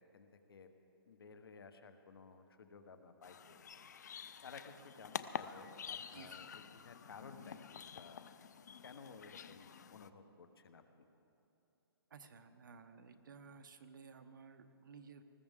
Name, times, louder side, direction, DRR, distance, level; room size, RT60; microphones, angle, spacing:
voice 1, 0.1-0.7 1.1-3.7 4.1-8.2 8.8-11.1, left 5 dB, 65° left, 8 dB, 1.2 m, -56 dB
sound 1, 3.2-10.1, left 7 dB, 45° left, 0.4 m, -48 dB
voice 2, 6.1-6.5 12.1-15.2, right 5 dB, 55° right, 8 dB, 0.9 m, -56 dB
20.0 x 14.5 x 3.7 m, 3.0 s
hypercardioid pair, 175°, 13 cm